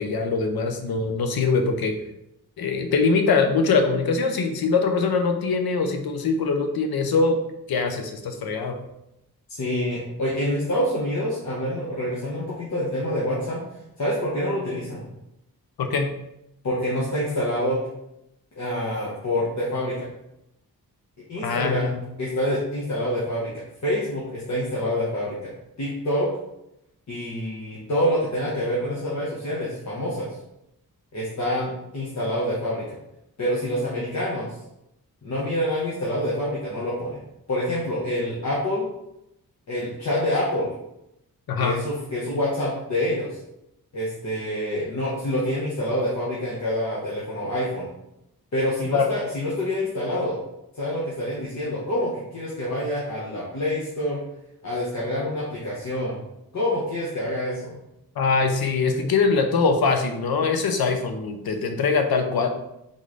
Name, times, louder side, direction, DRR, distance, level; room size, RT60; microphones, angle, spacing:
voice 1, 0.0-1.9 2.6-7.4 7.7-8.8 15.8-16.1 21.4-22.0 41.5-41.7 48.9-49.1 58.2-62.5, left 4 dB, 75° left, 5 dB, 0.7 m, -22 dB
voice 2, 9.6-13.6 14.0-15.0 16.6-17.8 18.6-20.1 21.3-21.9 22.2-25.5 25.8-26.3 27.1-30.3 31.1-33.0 33.4-34.5 35.2-37.2 37.5-38.9 39.7-40.7 41.6-43.4 43.9-47.9 48.5-50.4 50.8-54.2 54.6-56.2 56.5-57.8, left 1 dB, 50° left, -6 dB, 1.1 m, -26 dB
3.9 x 3.2 x 3.8 m, 0.85 s
cardioid pair, 85°, 37 cm